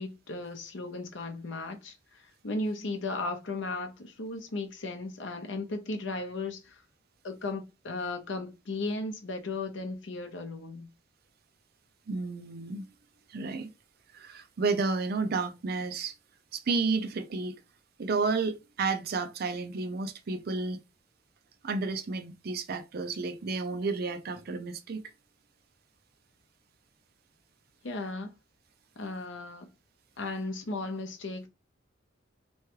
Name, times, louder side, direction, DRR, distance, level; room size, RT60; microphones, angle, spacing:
voice 1, 0.0-6.8 7.2-10.9 27.8-28.3 29.0-29.7 30.2-31.5, left 2 dB, 75° left, 0.7 m, -36 dB
voice 2, 12.1-12.9 13.3-13.7 14.1-16.1 16.5-17.6 18.0-20.8 21.6-25.0, right 4 dB, 55° right, 0.5 m, -31 dB
3.1 x 2.3 x 2.9 m
head